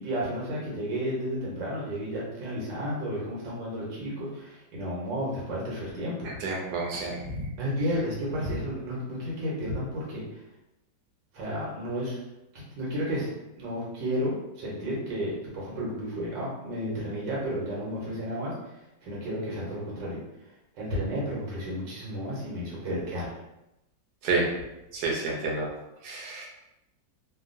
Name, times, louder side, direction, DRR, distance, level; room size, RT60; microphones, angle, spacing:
voice 1, 0.0-6.3 7.6-10.2 11.3-12.2 12.5-13.3 13.6-18.5 19.0-20.2 20.7-23.3, equal, 85° right, -5 dB, 1.7 m, -32 dB
voice 2, 6.2-7.4 24.2-24.5 24.9-25.7 26.0-26.5, right 3 dB, 65° right, -2 dB, 1.2 m, -29 dB
3.6 x 2.3 x 2.5 m, 0.93 s
omnidirectional pair, 1.9 m